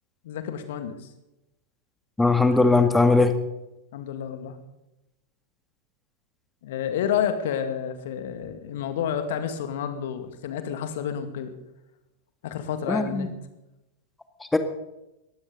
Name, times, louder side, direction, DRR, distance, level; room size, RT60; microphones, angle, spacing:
voice 1, 0.2-1.1 3.9-4.6 6.6-11.5 12.4-13.3, left 8 dB, 55° left, 8 dB, 2.1 m, -30 dB
voice 2, 2.2-3.3 12.9-13.3 14.5-14.6, left 3 dB, 5° left, 8 dB, 1.8 m, -19 dB
21.0 x 15.5 x 4.0 m, 0.93 s
figure-of-eight pair, 90°, 0 cm